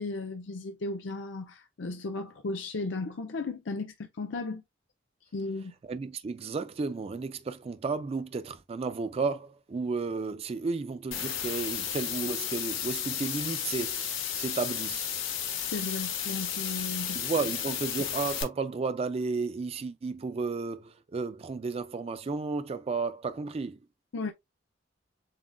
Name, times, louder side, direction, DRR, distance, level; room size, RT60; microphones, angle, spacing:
voice 1, 0.0-4.6 5.3-5.7 15.6-17.2 24.1-24.3, left 3 dB, 65° left, 0.5 m, -35 dB
voice 2, 5.9-15.1 17.1-23.8, right 4 dB, 30° right, 0.3 m, -33 dB
sound 1, 11.1-18.4, left 8 dB, 85° left, 1.5 m, -33 dB
7.3 x 2.5 x 2.2 m
head